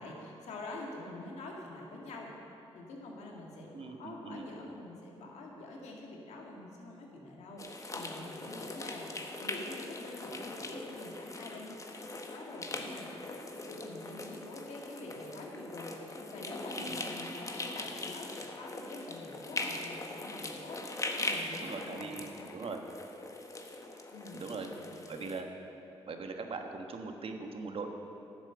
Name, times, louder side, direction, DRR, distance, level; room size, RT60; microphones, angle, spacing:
voice 1, 0.0-2.3 2.7-13.4 13.6-22.6 24.1-25.2, left 2 dB, 80° left, -1 dB, 1.9 m, -46 dB
voice 2, 3.7-4.5 16.8-17.0 21.6-22.8 24.3-24.7 25.1-25.5 26.1-27.9, right 4 dB, 55° right, 4 dB, 1.2 m, -41 dB
sound 1, 7.6-25.4, left 2 dB, 30° left, 1.2 m, -41 dB
10.5 x 7.4 x 6.9 m, 2.9 s
supercardioid pair, 50°, 11 cm